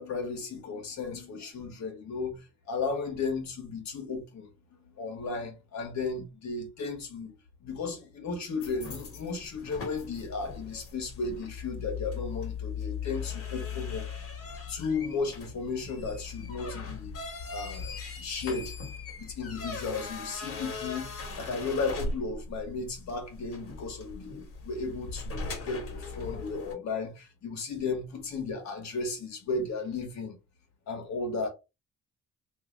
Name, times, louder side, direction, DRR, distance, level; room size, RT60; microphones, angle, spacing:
voice 1, 0.0-4.5 5.0-7.4 7.6-14.1 14.7-17.1 17.5-18.7 19.2-30.4 30.9-31.5, left 4 dB, 65° left, 1.2 m, -35 dB
sound 1, 8.6-26.7, left 5 dB, 50° left, 1.4 m, -39 dB
2.7 x 2.6 x 3.7 m
cardioid pair, 90°, 30 cm